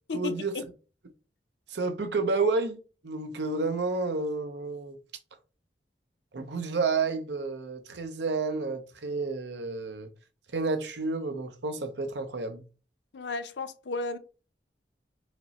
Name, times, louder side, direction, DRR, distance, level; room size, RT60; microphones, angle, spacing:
voice 1, 0.1-0.6 1.7-5.0 6.3-10.1 10.5-12.6, right 3 dB, 80° right, 0.7 m, -30 dB
voice 2, 13.1-14.2, left 3 dB, 85° left, 0.5 m, -33 dB
5.0 x 2.0 x 4.1 m
head